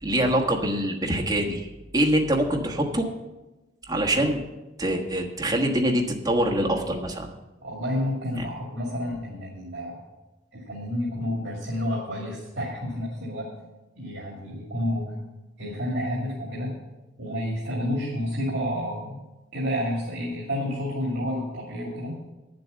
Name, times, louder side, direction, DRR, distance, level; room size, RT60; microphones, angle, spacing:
voice 1, 0.0-1.7 1.9-3.1 3.9-4.4 4.8-7.3 8.4-8.5, right 1 dB, 20° right, -1 dB, 1.3 m, -24 dB
voice 2, 7.6-10.0 10.5-13.5 14.0-15.1 15.6-16.8 17.2-19.1 19.5-22.2, left 1 dB, 60° right, -3 dB, 2.4 m, -30 dB
9.5 x 7.9 x 6.9 m, 1.1 s
head